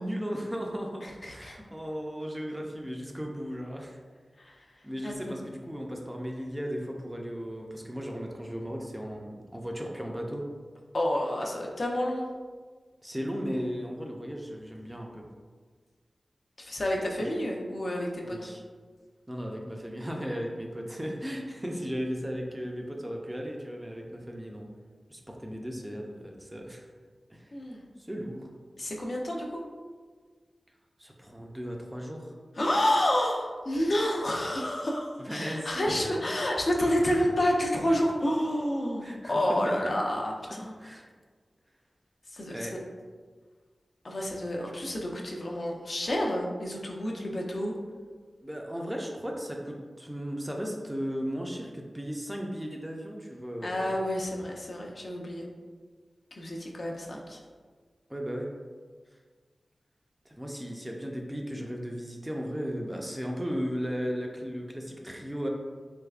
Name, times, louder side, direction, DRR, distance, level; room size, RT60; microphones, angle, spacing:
voice 1, 0.0-4.0 4.8-10.5 13.0-15.3 17.0-17.3 18.2-18.6 19.3-24.7 25.1-26.8 27.3-27.5 28.0-28.5 31.0-32.3 35.2-36.3 37.0-37.2 39.0-39.4 39.7-39.8 40.5-41.1 42.5-42.7 48.4-54.0 58.1-58.5 60.3-65.5, equal, 10° right, 0 dB, 0.4 m, -36 dB
voice 2, 1.0-1.6 4.4-4.6 5.0-5.4 10.9-12.3 16.6-18.5 27.5-27.8 28.8-29.6 32.6-40.7 42.3-42.8 44.0-47.7 53.6-55.5 56.3-57.4, left 1 dB, 50° left, -1 dB, 0.5 m, -29 dB
3.4 x 3.1 x 2.3 m, 1.5 s
wide cardioid pair, 80°, 0 cm